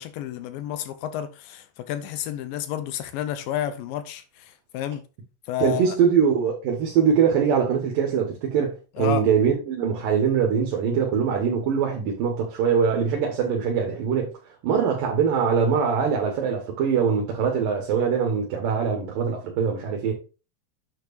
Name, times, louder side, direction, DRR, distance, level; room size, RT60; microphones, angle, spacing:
voice 1, 0.0-5.0 5.5-6.0 9.0-9.3, left 11 dB, 85° left, 2.4 m, -31 dB
voice 2, 5.6-14.3 14.6-20.1, right 7 dB, 75° right, 2.9 m, -22 dB
9.0 x 7.0 x 2.5 m
omnidirectional pair, 4.0 m